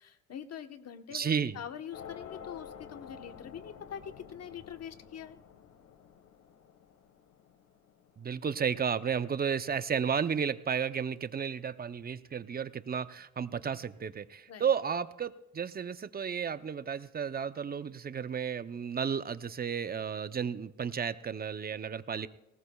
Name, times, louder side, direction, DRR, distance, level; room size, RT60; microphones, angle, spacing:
voice 1, 0.0-5.4 14.5-14.7, left 8 dB, 55° left, 7 dB, 1.2 m, -44 dB
voice 2, 1.1-1.6 8.2-22.3, right 7 dB, 30° right, 13 dB, 0.6 m, -33 dB
sound 1, 1.9-8.7, left 8 dB, 75° left, 1.5 m, -50 dB
19.5 x 19.0 x 2.3 m, 0.90 s
cardioid pair, 90°, 30 cm